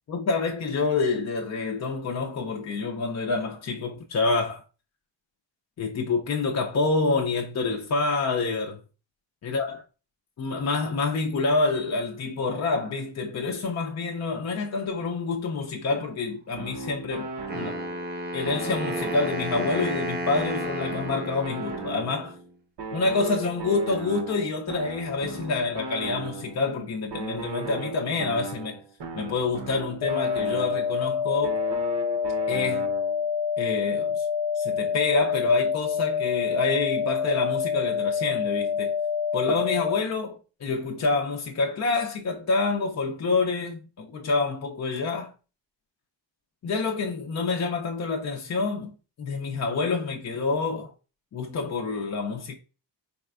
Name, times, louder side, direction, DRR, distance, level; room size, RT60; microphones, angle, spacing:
voice 1, 0.1-4.6 5.8-8.8 9.4-9.8 10.4-17.8 18.3-22.4 22.9-28.8 29.1-31.6 32.5-32.9 33.6-34.3 34.5-38.9 39.3-45.3 46.6-50.9 51.3-52.6, left 3 dB, 40° left, 0.4 m, -27 dB
sound 1, 16.6-18.1 18.5-22.4 22.8-26.7 27.1-31.1 31.4-33.3, right 3 dB, 70° right, 0.8 m, -37 dB
Wind instrument woodwind instrument, 17.5-22.4, equal, 25° right, 0.7 m, -33 dB
sound 2, 30.0-40.0, left 7 dB, 75° left, 0.7 m, -27 dB
4.1 x 3.2 x 2.3 m
wide cardioid pair, 105°, 43 cm